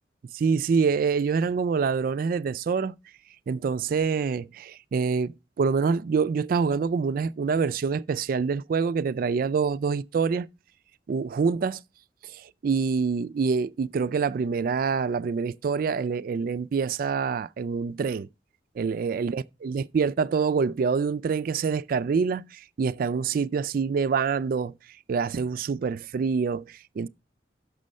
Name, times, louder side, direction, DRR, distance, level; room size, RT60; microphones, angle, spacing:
voice 1, 0.3-3.0 3.5-10.5 11.1-11.8 12.3-18.3 18.8-24.7 25.1-27.1, right 5 dB, 55° right, 0.3 m, -26 dB
6.8 x 6.3 x 5.3 m
head